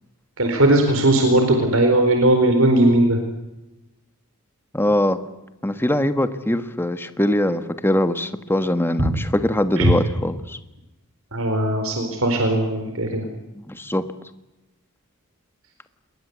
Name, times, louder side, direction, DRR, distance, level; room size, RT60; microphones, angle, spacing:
voice 1, 0.4-3.2 9.0-9.1 9.8-9.9 11.3-13.2, right 1 dB, 65° right, 5 dB, 4.4 m, -18 dB
voice 2, 4.7-5.2 5.6-10.6 13.5-14.1, left 1 dB, 10° left, 9 dB, 1.5 m, -22 dB
28.0 x 22.0 x 8.2 m, 0.95 s
head